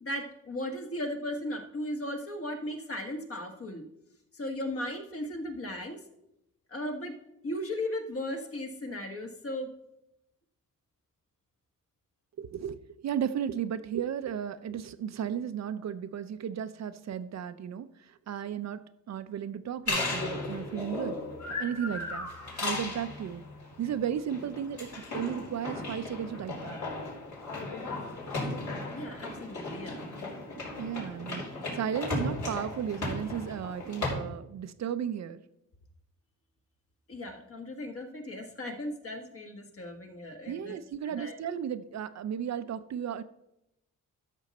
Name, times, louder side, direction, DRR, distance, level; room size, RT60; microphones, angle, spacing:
voice 1, 0.0-3.8 4.3-6.0 6.7-7.1 7.4-9.7 28.9-30.1 37.1-40.7 41.1-41.3, left 1 dB, 45° left, 4 dB, 1.5 m, -36 dB
voice 2, 12.4-21.2 21.6-22.3 22.6-23.4 23.8-26.8 30.8-35.4 40.5-43.2, right 9 dB, 55° right, 12 dB, 0.5 m, -34 dB
sound 1, 19.9-34.1, left 2 dB, 60° left, 4.4 m, -36 dB
12.5 x 6.4 x 4.2 m, 0.86 s
cardioid pair, 115°, 33 cm